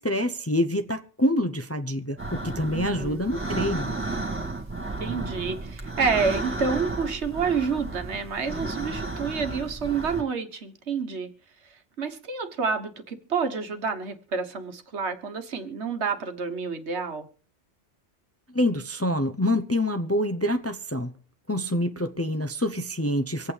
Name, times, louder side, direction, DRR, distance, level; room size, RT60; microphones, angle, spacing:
voice 1, 0.0-3.9 18.5-21.2 21.5-23.5, left 1 dB, 15° left, 0.5 m, -26 dB
sound 1, 2.2-10.2, right 2 dB, 10° right, 1.8 m, -33 dB
voice 2, 2.7-3.3 5.0-11.3 12.0-17.3, right 5 dB, 70° right, 1.5 m, -29 dB
25.5 x 8.6 x 3.3 m
omnidirectional pair, 1.2 m